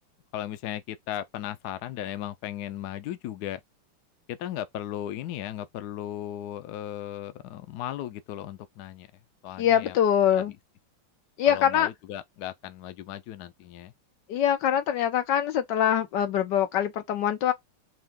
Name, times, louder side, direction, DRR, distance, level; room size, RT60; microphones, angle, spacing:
voice 1, 0.3-3.6 4.3-9.1 9.4-9.9 10.4-10.5 11.5-13.9, left 12 dB, 85° left, 0.8 m, -36 dB
voice 2, 9.6-10.5 11.4-11.9 14.3-17.5, left 10 dB, 65° left, 1.3 m, -23 dB
4.9 x 2.3 x 3.6 m
omnidirectional pair, 2.3 m